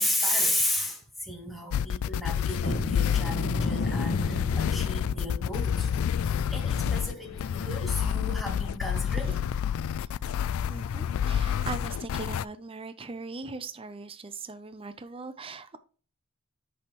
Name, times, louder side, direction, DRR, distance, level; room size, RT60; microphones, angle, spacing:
voice 1, 0.0-5.9 6.2-9.4, left 1 dB, ahead, 2.3 m, -33 dB
sound 1, 1.7-12.4, left 8 dB, 80° left, 0.3 m, -28 dB
sound 2, 2.6-9.3 9.7-9.9 10.3-10.4 10.9-11.1, left 1 dB, 50° left, 1.3 m, -36 dB
voice 2, 10.7-15.8, right 3 dB, 25° right, 0.6 m, -40 dB
8.3 x 6.3 x 3.0 m
head